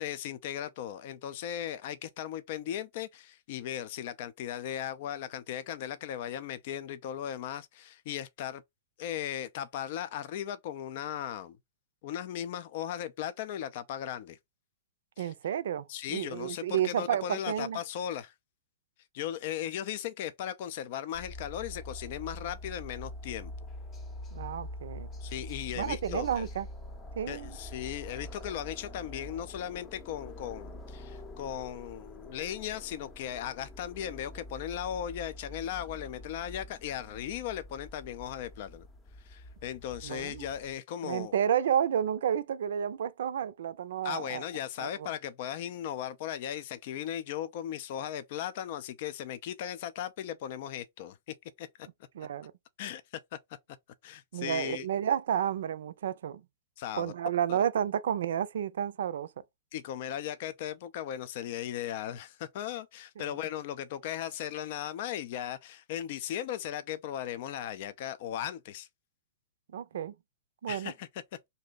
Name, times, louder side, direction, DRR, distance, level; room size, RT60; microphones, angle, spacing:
voice 1, 0.0-8.6 9.0-11.6 12.0-14.4 15.2-15.3 15.9-18.3 19.1-23.5 25.2-26.5 27.3-38.9 39.2-41.3 44.0-51.9 52.8-53.0 54.0-54.9 56.8-57.1 57.5-57.6 59.7-68.9 70.7-71.1, left 10 dB, 55° left, 0.4 m, -37 dB
voice 2, 15.2-17.8 24.3-25.1 25.7-26.7 27.2-27.6 40.0-40.5 41.0-44.4 44.8-45.1 52.1-52.5 54.3-56.4 57.0-59.3 63.2-63.4 69.7-70.1 70.6-70.9, right 9 dB, 75° right, 0.4 m, -31 dB
sound 1, 21.1-40.8, left 1 dB, 20° left, 0.7 m, -45 dB
2.6 x 2.1 x 3.7 m
hypercardioid pair, 130°, 0 cm